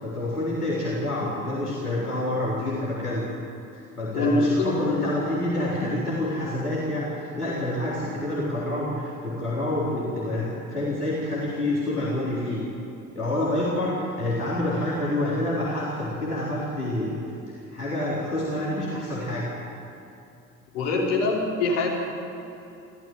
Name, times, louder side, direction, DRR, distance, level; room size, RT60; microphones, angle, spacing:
voice 1, 0.0-3.2 3.7-12.6 13.1-17.2 17.7-19.5, left 1 dB, 90° left, -7 dB, 4.0 m, -27 dB
voice 2, 4.1-5.0 20.7-21.9, left 2 dB, 70° left, -3 dB, 5.4 m, -24 dB
29.0 x 14.0 x 9.3 m, 2.8 s
figure-of-eight pair, 60°, 44 cm